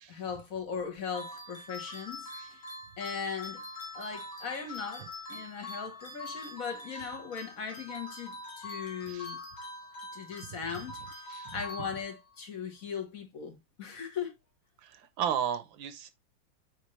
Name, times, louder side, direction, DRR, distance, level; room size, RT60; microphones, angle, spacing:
voice 1, 0.1-2.6 3.0-3.6 3.9-9.4 10.1-14.4, left 6 dB, 50° left, 1.7 m, -39 dB
sound 1, 1.1-12.3, left 2 dB, 85° left, 2.5 m, -44 dB
voice 2, 11.3-11.6 14.8-16.1, right 9 dB, 85° right, 1.6 m, -34 dB
8.6 x 3.6 x 3.2 m
omnidirectional pair, 2.1 m